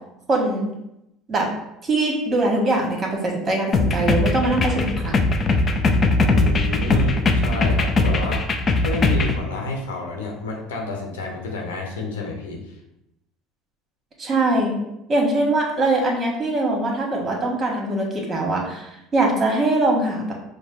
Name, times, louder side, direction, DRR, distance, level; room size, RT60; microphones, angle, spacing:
voice 1, 0.3-0.7 1.3-1.5 1.8-5.3 14.2-14.8 15.1-20.3, right 2 dB, 30° right, 0 dB, 1.5 m, -22 dB
Kim Drums, 3.7-9.4, left 2 dB, 35° left, 0.6 m, -20 dB
voice 2, 6.3-8.5 8.8-12.8, left 3 dB, 90° left, 0 dB, 1.0 m, -29 dB
5.2 x 2.1 x 4.6 m, 0.86 s
hypercardioid pair, 80°, 0 cm